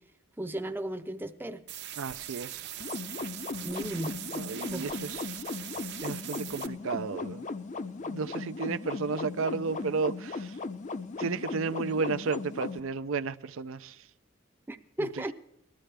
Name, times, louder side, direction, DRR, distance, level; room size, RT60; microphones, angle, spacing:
voice 1, 0.4-1.6 3.6-4.1 4.7-5.1 14.7-15.3, right 1 dB, 10° right, 0.5 m, -35 dB
sound 1, 1.7-6.7, right 11 dB, 55° right, 0.9 m, -41 dB
voice 2, 2.0-2.7 4.3-5.4 6.0-7.5 8.0-10.6 11.2-14.0 15.0-15.1, right 4 dB, 70° right, 0.5 m, -33 dB
sound 2, 2.8-12.8, left 3 dB, 35° left, 0.6 m, -37 dB
19.5 x 13.0 x 3.3 m
head